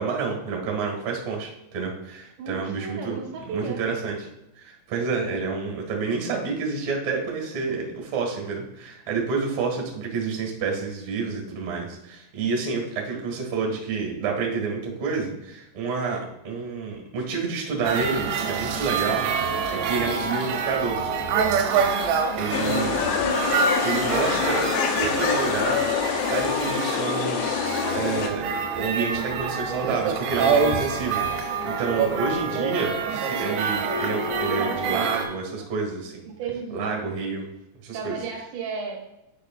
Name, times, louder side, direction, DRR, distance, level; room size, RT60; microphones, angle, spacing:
voice 1, 0.0-3.2 3.5-4.3 4.6-21.0 22.4-23.0 23.8-25.8 26.3-36.2 36.7-37.5 37.8-38.2, right 4 dB, 50° right, 0 dB, 2.3 m, -29 dB
voice 2, 2.4-3.9 20.1-20.5 22.3-23.2 34.4-35.7 36.2-37.3 37.9-39.0, right 5 dB, 70° right, 0 dB, 2.8 m, -35 dB
sound 1, 17.8-35.2, right 5 dB, 85° right, 3.1 m, -26 dB
sound 2, 22.5-28.3, left 7 dB, 85° left, 2.1 m, -25 dB
10.0 x 6.4 x 2.4 m, 0.88 s
omnidirectional pair, 5.2 m